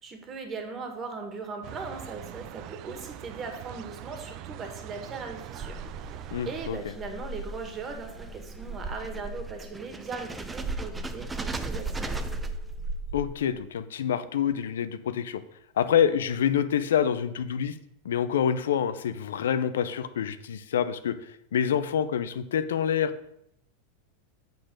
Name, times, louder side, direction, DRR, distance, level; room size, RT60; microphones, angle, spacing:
voice 1, 0.0-5.8 6.1-6.2 6.5-12.1, right 4 dB, 30° right, 4 dB, 1.8 m, -39 dB
sound 1, 1.6-6.7, right 12 dB, 50° right, 0.4 m, -42 dB
sound 2, 5.3-13.6, right 2 dB, 15° right, 0.7 m, -36 dB
voice 2, 6.3-6.8 13.1-15.4 15.8-17.8 18.0-23.1, left 8 dB, 85° left, 13 dB, 0.6 m, -27 dB
8.5 x 4.0 x 6.4 m, 0.76 s
hypercardioid pair, 115°, 0 cm